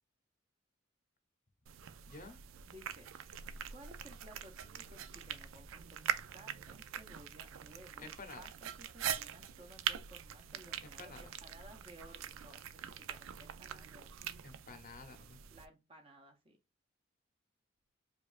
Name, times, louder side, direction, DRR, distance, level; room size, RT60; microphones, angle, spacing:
sound 1, 1.7-15.7, right 9 dB, 85° right, 0.4 m, -43 dB
voice 1, 2.1-2.4 8.0-8.5 10.8-11.2 14.4-15.4, left 3 dB, 45° left, 0.7 m, -51 dB
voice 2, 2.7-3.1 3.7-8.1 8.4-14.3 15.5-16.6, right 1 dB, 30° right, 0.6 m, -57 dB
5.0 x 2.3 x 2.4 m
head